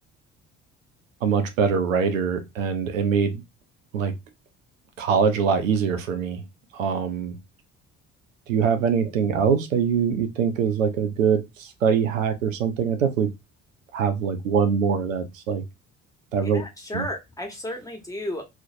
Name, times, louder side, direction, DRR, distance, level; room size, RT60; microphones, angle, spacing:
voice 1, 1.2-3.4 3.9-4.1 5.0-6.4 6.7-7.4 8.5-13.3 13.9-15.6 16.3-16.6 16.9-17.1, right 6 dB, 80° right, 0.5 m, -23 dB
voice 2, 16.5-18.4, left 1 dB, 10° left, 0.9 m, -33 dB
2.5 x 2.0 x 2.5 m
figure-of-eight pair, 50°, 39 cm